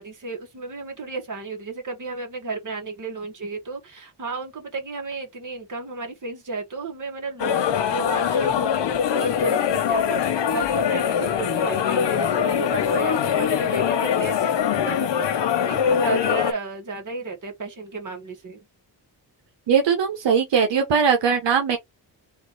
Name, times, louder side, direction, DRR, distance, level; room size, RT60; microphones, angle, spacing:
voice 1, 0.0-8.8 9.2-15.3 15.6-18.6, right 3 dB, 45° right, 1.8 m, -33 dB
sound 1, 7.4-16.5, left 8 dB, 80° left, 1.0 m, -22 dB
voice 2, 19.7-21.8, right 6 dB, 85° right, 1.1 m, -20 dB
3.7 x 2.7 x 4.0 m
cardioid pair, 80°, 42 cm